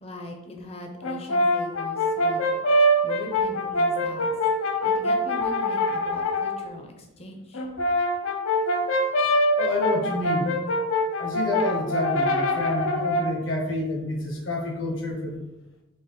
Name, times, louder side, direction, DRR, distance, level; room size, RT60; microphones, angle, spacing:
voice 1, 0.0-2.5 3.0-4.3 4.8-7.6, left 1 dB, 30° left, 2 dB, 0.6 m, -40 dB
Brass instrument, 1.0-6.6 7.5-13.4, left 1 dB, 75° left, 0.6 m, -24 dB
voice 2, 9.6-10.5 11.2-15.4, left 1 dB, 60° left, 1 dB, 0.9 m, -28 dB
3.7 x 3.0 x 4.5 m, 0.95 s
head